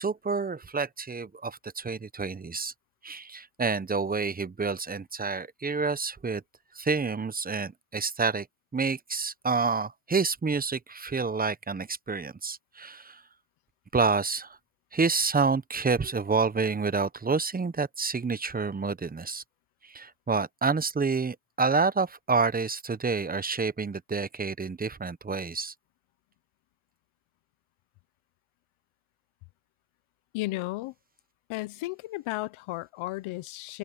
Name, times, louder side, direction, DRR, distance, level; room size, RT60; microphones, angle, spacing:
voice 1, 0.0-2.7 3.0-6.4 6.7-8.5 8.7-13.2 13.9-14.6 14.9-19.4 19.8-25.7, right 4 dB, 20° right, 0.9 m, -28 dB
voice 2, 30.3-30.9 31.5-33.8, left 19 dB, 80° left, 1.1 m, -34 dB
open air
supercardioid pair, 85°, 48 cm